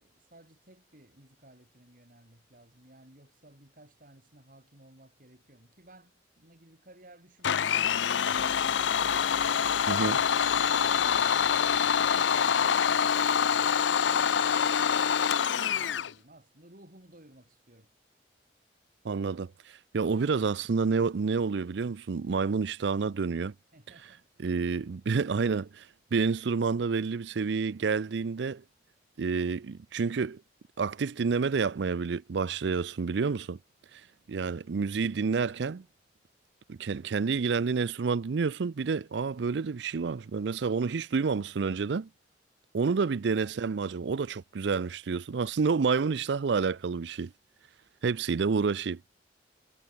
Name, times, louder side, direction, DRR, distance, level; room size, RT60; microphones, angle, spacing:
voice 1, 0.0-9.6 9.8-15.2 15.5-17.9 23.7-24.2 42.9-43.0, right 1 dB, 50° right, 4.2 m, -57 dB
Domestic sounds home sounds, 7.4-16.1, left 7 dB, 80° left, 0.6 m, -25 dB
sound 1, 8.3-13.3, equal, 5° left, 4.9 m, -52 dB
voice 2, 9.9-10.2 19.0-23.5 24.4-25.9 26.1-28.6 29.2-30.4 30.8-33.6 33.9-34.0 34.3-35.8 36.7-42.1 42.7-47.3 48.0-49.0, right 5 dB, 70° right, 0.5 m, -29 dB
head